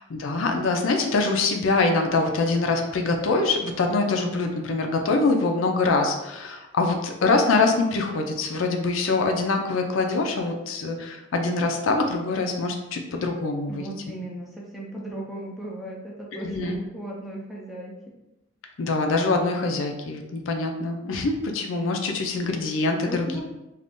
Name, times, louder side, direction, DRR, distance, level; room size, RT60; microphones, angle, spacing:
voice 1, 0.0-13.9 16.3-16.8 18.8-23.4, left 3 dB, 75° left, 4 dB, 0.4 m, -24 dB
voice 2, 13.7-18.1 23.0-23.4, right 1 dB, ahead, -4 dB, 0.5 m, -36 dB
2.5 x 2.3 x 3.5 m, 0.97 s
head